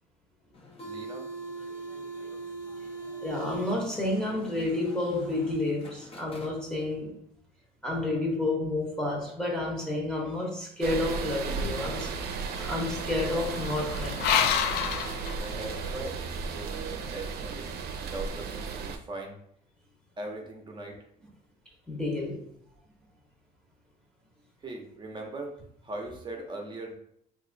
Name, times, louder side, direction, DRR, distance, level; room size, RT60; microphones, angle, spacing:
sound 1, 0.5-7.0, right 3 dB, 35° left, 0.7 m, -42 dB
voice 1, 0.8-1.3 15.4-19.4 20.2-21.3 24.6-25.6 25.8-27.0, right 2 dB, 25° right, 0.7 m, -40 dB
voice 2, 3.2-7.1 7.8-12.1 12.6-14.3 14.7-14.9 21.9-22.4, left 2 dB, 5° left, 0.9 m, -30 dB
sound 2, 10.8-19.0, right 5 dB, 70° right, 0.5 m, -35 dB
sound 3, 11.6-16.0, left 8 dB, 80° left, 0.4 m, -31 dB
2.9 x 2.5 x 3.8 m
cardioid pair, 110°, 17 cm